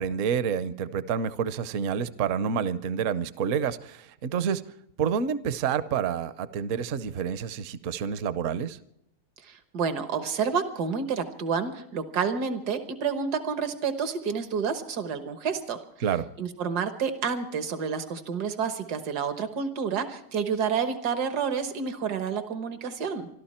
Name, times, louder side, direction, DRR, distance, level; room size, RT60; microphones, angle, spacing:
voice 1, 0.0-4.6 5.0-8.8 16.0-16.3, right 7 dB, 60° right, 14 dB, 1.0 m, -28 dB
voice 2, 9.4-15.8 16.4-23.3, right 6 dB, 80° right, 9 dB, 1.8 m, -29 dB
26.0 x 12.5 x 4.3 m, 0.74 s
omnidirectional pair, 1.7 m